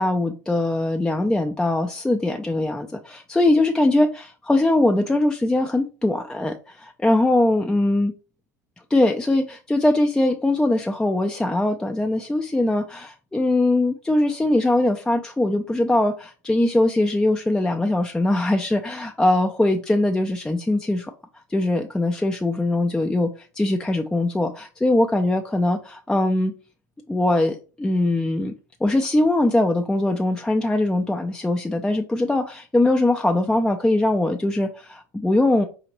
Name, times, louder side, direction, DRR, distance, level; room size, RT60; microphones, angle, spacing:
voice 1, 0.0-8.1 8.9-21.1 21.5-26.5 27.1-28.5 28.8-35.7, left 2 dB, 10° left, 0.4 m, -21 dB
5.0 x 2.8 x 3.0 m
figure-of-eight pair, 70°, 9 cm